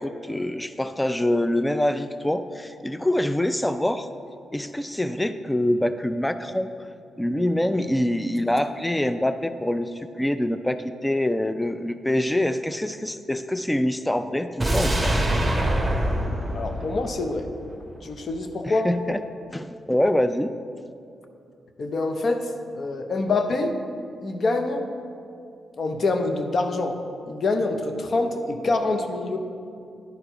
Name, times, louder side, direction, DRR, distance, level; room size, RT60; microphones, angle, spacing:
voice 1, 0.0-4.1 4.5-6.7 7.2-15.1 18.7-19.2 19.5-20.5, left 1 dB, 10° left, 11 dB, 0.3 m, -25 dB
sound 1, 14.6-17.7 18.0-18.1, right 1 dB, 10° right, 1.5 m, -24 dB
voice 2, 16.5-17.5 18.0-18.9 21.8-23.8 24.2-24.9 25.8-29.4, left 2 dB, 55° left, 6 dB, 0.7 m, -26 dB
10.5 x 4.5 x 5.1 m, 2.5 s
cardioid pair, 75°, 0 cm